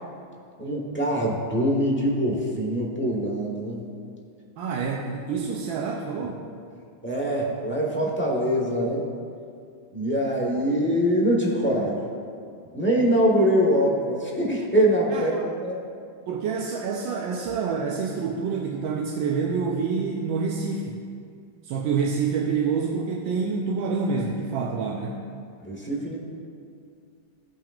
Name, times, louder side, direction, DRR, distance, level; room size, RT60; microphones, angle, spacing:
voice 1, 0.6-3.8 6.2-6.3 7.0-9.0 9.9-12.0 12.7-15.8 24.6-24.7 25.6-26.2, equal, 10° left, -3 dB, 0.7 m, -23 dB
voice 2, 4.6-6.4 15.1-15.5 16.3-21.0 21.6-25.2, right 5 dB, 90° right, -1 dB, 1.4 m, -27 dB
16.5 x 5.8 x 2.5 m, 2.3 s
omnidirectional pair, 2.1 m